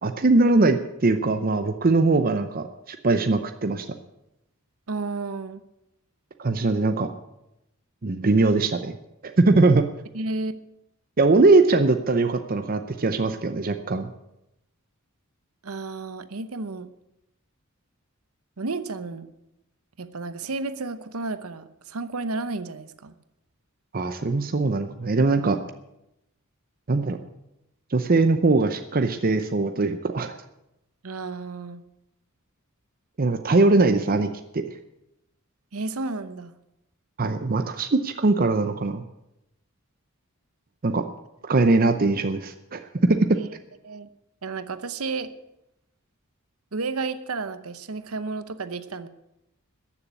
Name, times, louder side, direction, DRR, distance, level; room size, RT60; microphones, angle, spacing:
voice 1, 0.0-3.9 6.4-7.1 8.0-8.9 9.4-9.8 11.2-14.1 23.9-25.6 26.9-27.2 27.9-30.3 33.2-34.6 37.2-39.0 40.8-41.0 41.5-43.4, right 3 dB, 40° right, 7 dB, 0.7 m, -21 dB
voice 2, 4.9-5.6 10.1-10.6 15.6-16.9 18.6-19.3 20.0-23.1 31.0-31.8 35.7-36.5 43.3-43.5 43.8-44.1 44.4-45.3 46.7-49.1, right 3 dB, 85° right, 12 dB, 0.9 m, -32 dB
14.0 x 7.1 x 9.5 m, 0.87 s
head